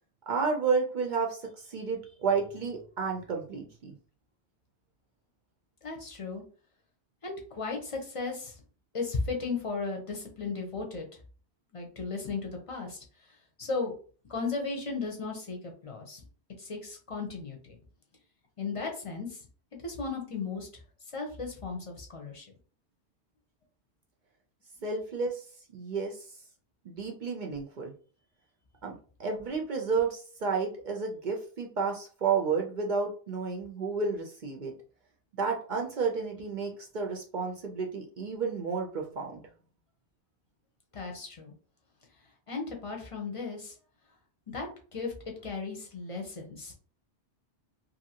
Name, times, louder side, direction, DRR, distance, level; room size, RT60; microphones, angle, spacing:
voice 1, 0.3-4.0 24.8-25.4 25.7-26.3 26.8-27.9 28.8-34.7 35.4-39.4, right 5 dB, 55° right, 1 dB, 0.6 m, -31 dB
voice 2, 5.8-6.4 7.2-8.5 8.9-11.1 11.7-13.0 13.6-13.9 14.3-16.2 16.6-17.8 18.6-19.4 19.8-20.7 21.1-22.5 40.9-41.5 42.5-43.7 44.5-45.1 45.4-46.7, left 4 dB, 35° left, 1 dB, 0.7 m, -35 dB
2.8 x 2.6 x 2.8 m, 0.41 s
omnidirectional pair, 1.2 m